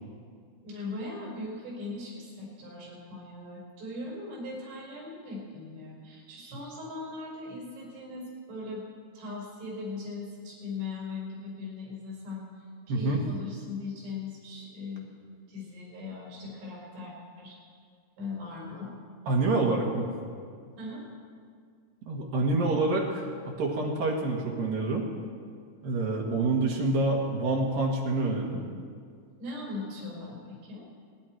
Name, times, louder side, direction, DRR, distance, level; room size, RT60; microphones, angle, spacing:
voice 1, 0.6-8.8 9.1-12.5 12.9-15.1 15.5-17.6 18.2-18.9 20.8-21.0 29.4-30.8, left 3 dB, 80° right, -4 dB, 7.6 m, -39 dB
voice 2, 19.3-20.1 22.1-25.1 25.8-28.6, right 2 dB, 60° right, -1 dB, 3.0 m, -27 dB
28.5 x 10.5 x 4.7 m, 2.1 s
omnidirectional pair, 5.5 m